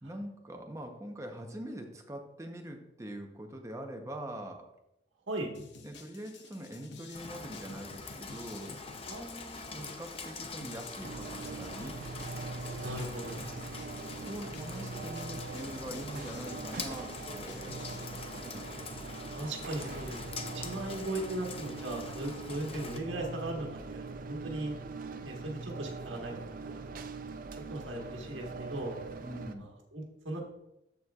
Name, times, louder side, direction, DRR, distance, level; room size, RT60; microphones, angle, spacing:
voice 1, 0.0-4.6 5.8-8.8 9.7-12.0 14.2-18.7 29.2-29.7, right 1 dB, 15° right, 3 dB, 0.8 m, -43 dB
sound 1, 5.5-18.1, left 4 dB, 65° left, 0.8 m, -52 dB
Rain, 7.1-23.0, left 4 dB, 30° left, 0.6 m, -44 dB
voice 2, 9.1-9.9 12.8-13.5 19.3-24.7 25.2-27.0 27.5-28.9 29.5-30.4, right 1 dB, 85° right, 0 dB, 1.5 m, -38 dB
sound 2, 11.0-29.5, right 3 dB, 45° right, 0.4 m, -42 dB
13.0 x 4.4 x 2.4 m, 0.85 s
head